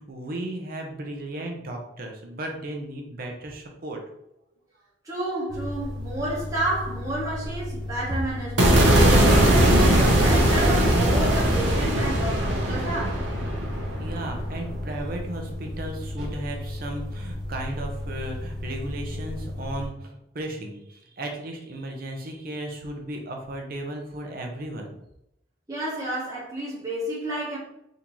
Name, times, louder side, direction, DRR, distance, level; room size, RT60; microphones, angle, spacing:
voice 1, 0.0-4.0 14.0-24.9, right 1 dB, 50° right, 2 dB, 0.7 m, -35 dB
voice 2, 5.0-8.8 9.0-13.2 25.7-27.6, right 1 dB, 20° right, -7 dB, 1.0 m, -30 dB
sound 1, 5.5-19.9, left 1 dB, ahead, 1.3 m, -34 dB
sound 2, 8.6-14.8, right 1 dB, 80° right, 0.9 m, -20 dB
3.7 x 2.7 x 3.0 m, 0.81 s
head